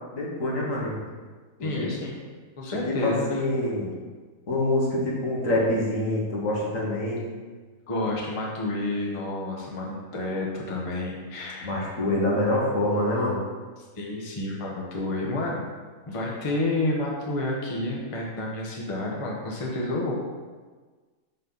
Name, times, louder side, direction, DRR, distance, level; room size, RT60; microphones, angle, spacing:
voice 1, 0.1-1.0 1.6-2.0 2.9-3.9 4.5-7.3 11.6-13.4, left 1 dB, 65° left, -4 dB, 1.8 m, -26 dB
voice 2, 1.6-2.2 2.6-3.4 7.9-11.8 13.8-15.7 16.1-20.1, left 2 dB, 25° left, -3 dB, 1.0 m, -30 dB
6.3 x 5.7 x 4.0 m, 1.4 s
omnidirectional pair, 1.5 m